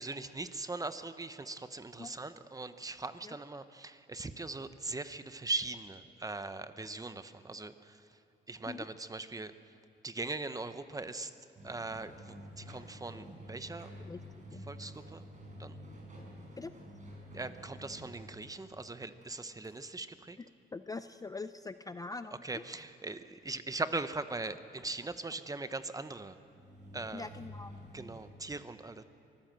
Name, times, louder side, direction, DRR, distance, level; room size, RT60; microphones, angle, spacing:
voice 1, 0.0-8.2 8.5-9.5 10.0-11.3 11.6-13.9 14.7-15.2 15.6-15.8 17.3-20.4 22.4-26.4 26.9-27.3 27.9-29.0, right 3 dB, 15° right, 11 dB, 1.0 m, -40 dB
sound 1, 11.6-19.3 19.6-19.7 26.2-28.3, equal, 40° right, 6.1 m, -50 dB
voice 2, 20.7-22.6 27.1-27.8, left 3 dB, 20° left, 11 dB, 0.5 m, -43 dB
24.5 x 14.5 x 7.6 m, 2.8 s
cardioid pair, 90°, 20 cm